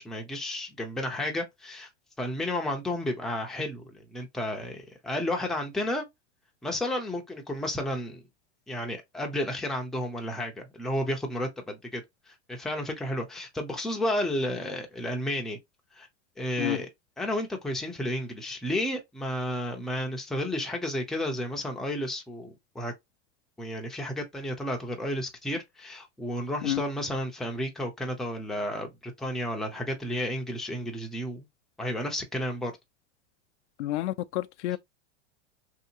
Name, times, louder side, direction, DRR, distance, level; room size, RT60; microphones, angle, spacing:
voice 1, 0.0-1.9 2.2-6.0 6.6-8.2 8.7-15.6 15.9-16.1 16.4-16.9 17.2-22.9 23.6-31.5 31.8-32.7, left 1 dB, ahead, 0.5 m, -32 dB
voice 2, 33.8-34.8, left 15 dB, 70° left, 0.5 m, -29 dB
3.3 x 2.8 x 2.7 m
supercardioid pair, 140°, 36 cm